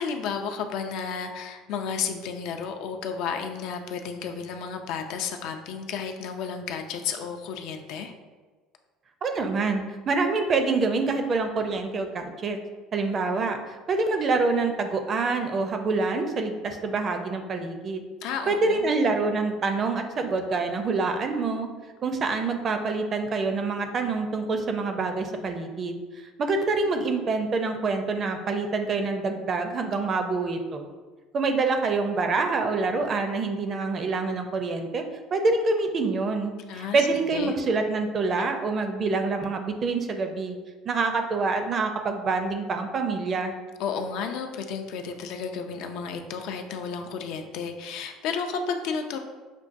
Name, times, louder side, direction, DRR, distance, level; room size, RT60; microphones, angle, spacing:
voice 1, 0.0-8.1 18.2-18.9 36.7-37.1 37.3-37.5 43.8-49.2, left 6 dB, 70° left, 5 dB, 0.4 m, -32 dB
voice 2, 9.2-12.6 12.9-18.0 18.5-21.7 22.0-30.9 31.3-35.0 35.3-40.6 40.9-43.5, right 3 dB, 35° right, 6 dB, 0.4 m, -26 dB
5.9 x 2.2 x 2.5 m, 1.3 s
cardioid pair, 120°, 0 cm